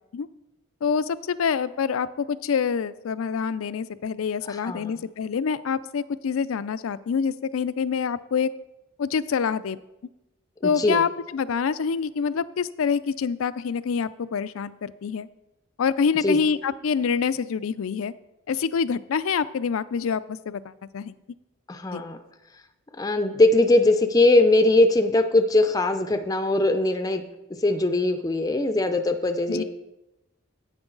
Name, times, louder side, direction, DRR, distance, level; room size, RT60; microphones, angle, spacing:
voice 1, 0.8-8.5 9.0-9.8 10.6-15.3 15.8-18.1 18.5-21.1 21.9-22.0 29.5-29.6, left 6 dB, 80° left, 16 dB, 0.4 m, -26 dB
voice 2, 4.5-5.0 10.6-11.0 16.2-16.4 21.7-22.2 23.0-27.2 27.5-29.6, left 2 dB, 15° left, 7 dB, 0.4 m, -21 dB
9.8 x 8.8 x 3.9 m, 0.95 s
head